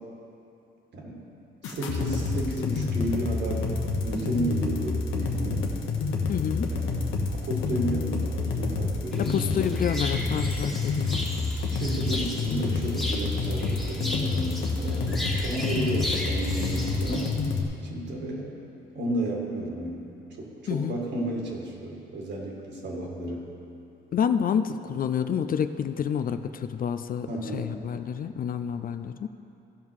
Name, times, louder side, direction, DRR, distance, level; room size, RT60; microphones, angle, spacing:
sound 1, 1.6-17.6, left 4 dB, 90° left, 1.1 m, -28 dB
voice 1, 1.6-3.7 4.0-5.7 6.7-7.1 7.3-9.6 11.7-17.4 17.8-18.5 18.9-20.1 20.4-23.5 27.3-27.7, right 1 dB, 60° right, -2 dB, 2.2 m, -32 dB
voice 2, 6.3-6.7 9.2-11.2 20.7-21.0 24.1-29.3, left 8 dB, 45° left, 10 dB, 0.4 m, -28 dB
sound 2, 9.1-17.3, left 1 dB, ahead, 1.5 m, -36 dB
15.0 x 5.6 x 4.7 m, 2.7 s
cardioid pair, 90°, 20 cm